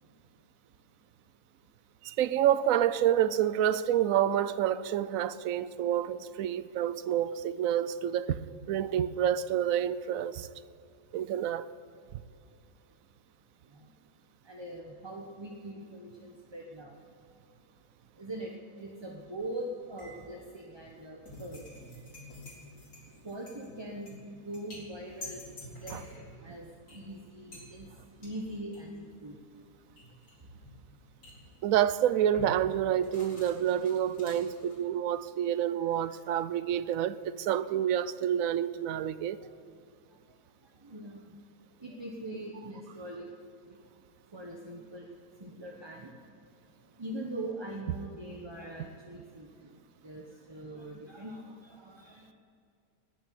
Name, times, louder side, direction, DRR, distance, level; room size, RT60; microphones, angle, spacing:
voice 1, 2.0-8.4 8.7-10.5 11.1-11.7 25.9-26.0 31.6-39.4, right 10 dB, 70° right, 1.0 m, -28 dB
voice 2, 13.6-13.9 14.4-17.4 18.0-21.8 23.1-26.1 26.4-29.6 30.4-30.7 31.4-31.6 35.6-35.9 36.8-37.0 39.4-39.5 40.0-43.3 43.6-43.8 44.3-52.3, right 1 dB, 20° right, 1.0 m, -43 dB
sound 1, 19.1-19.6 20.0-35.2, left 1 dB, 75° left, 4.3 m, -49 dB
19.5 x 7.2 x 8.4 m
omnidirectional pair, 1.5 m